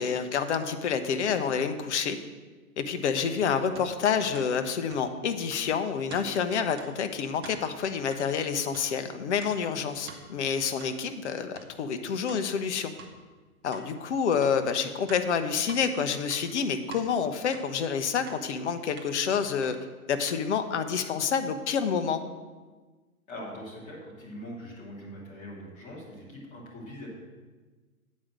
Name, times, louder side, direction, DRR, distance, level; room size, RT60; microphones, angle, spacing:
voice 1, 0.0-2.2 2.8-12.9 13.6-19.8 20.1-22.2, left 6 dB, 50° left, 8 dB, 0.9 m, -28 dB
sound 1, 3.2-3.3 3.7-3.9 4.3-4.5 4.9-5.0 5.5-5.6 6.1-6.3 6.8-6.9 7.3-7.6 8.1-8.2 8.7-8.9 9.4-9.5 10.1-10.2 10.8-10.9 11.5-11.7 12.3-12.4 13.0-13.1 13.7-13.8 14.4-14.5 15.1-15.8 16.2-17.0 17.5-17.7 18.3-18.4 19.0-19.1 19.6-19.7 20.3-20.4, right 5 dB, 15° right, 0.6 m, -46 dB
voice 2, 23.3-27.1, equal, 15° left, -5 dB, 2.5 m, -42 dB
8.6 x 5.2 x 7.4 m, 1.3 s
hypercardioid pair, 150°, 45 cm